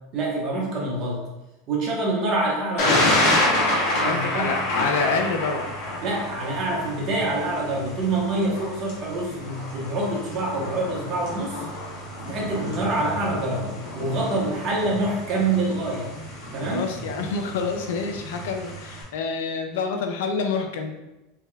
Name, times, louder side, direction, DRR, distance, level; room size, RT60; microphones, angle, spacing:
voice 1, 0.1-1.2 1.7-3.2 3.9-4.6 6.0-11.6 12.3-16.1 16.5-16.9, right 2 dB, 45° right, -2 dB, 1.0 m, -26 dB
Thunder, 2.8-19.0, left 1 dB, 65° left, 1.2 m, -28 dB
voice 2, 4.0-5.6 16.7-20.9, left 4 dB, 80° left, 5 dB, 0.4 m, -27 dB
3.5 x 3.1 x 2.2 m, 0.97 s
supercardioid pair, 130°, 0 cm